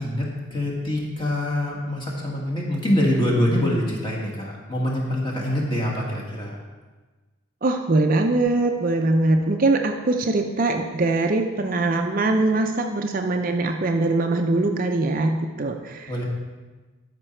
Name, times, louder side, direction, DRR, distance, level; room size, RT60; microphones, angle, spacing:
voice 1, 0.0-6.6 16.1-16.2, left 1 dB, 20° left, -3 dB, 1.6 m, -25 dB
voice 2, 7.6-16.1, right 2 dB, 40° right, 4 dB, 0.5 m, -22 dB
12.5 x 5.2 x 4.4 m, 1.3 s
head